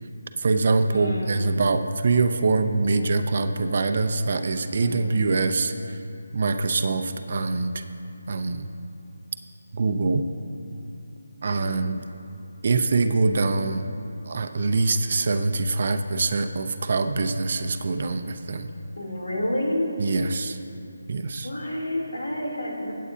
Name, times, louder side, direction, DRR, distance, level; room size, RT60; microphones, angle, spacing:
voice 1, 0.4-6.0 6.3-7.7 8.3-8.7 9.7-10.2 11.4-12.0 12.6-13.8 14.3-18.7 20.0-20.6 21.1-21.5, right 3 dB, 50° right, 8 dB, 0.7 m, -24 dB
voice 2, 0.9-1.4 4.8-5.2 11.4-11.7 18.9-19.9 21.4-22.9, left 1 dB, 90° left, -2 dB, 3.2 m, -29 dB
22.5 x 8.5 x 2.8 m, 2.6 s
figure-of-eight pair, 165°, 0 cm